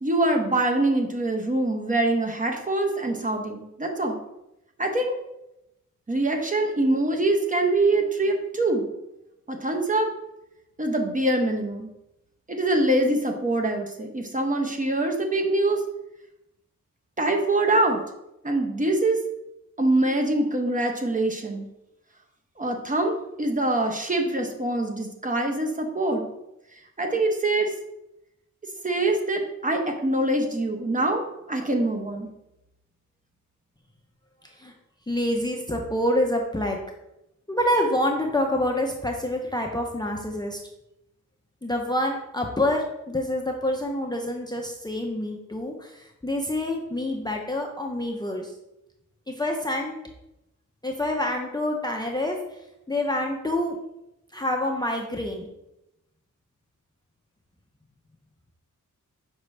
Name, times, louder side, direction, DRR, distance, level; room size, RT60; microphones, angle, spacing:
voice 1, 0.0-4.2 4.8-5.2 6.1-8.8 9.5-10.1 10.8-11.9 12.5-15.8 17.2-18.0 18.4-19.2 19.8-21.7 22.6-26.3 27.0-27.7 28.8-31.2 31.5-32.3, right 2 dB, 25° right, 3 dB, 0.8 m, -24 dB
voice 2, 34.4-34.7 35.1-36.8 37.5-40.6 41.6-48.5 49.3-50.0 50.8-52.4 52.9-53.8 54.3-55.5, left 1 dB, 15° left, 1 dB, 0.5 m, -27 dB
6.1 x 5.0 x 3.2 m, 0.88 s
wide cardioid pair, 165°, 31 cm